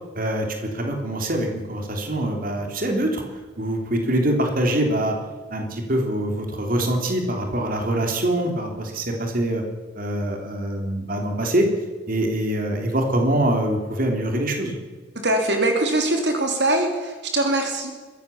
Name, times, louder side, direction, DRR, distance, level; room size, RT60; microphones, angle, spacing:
voice 1, 0.1-3.2 3.6-5.2 5.5-9.6 9.9-11.7 12.1-14.8, right 1 dB, 50° right, 3 dB, 3.5 m, -24 dB
voice 2, 15.2-17.9, right 2 dB, 65° right, 4 dB, 3.2 m, -22 dB
23.0 x 16.5 x 7.2 m, 1.4 s
head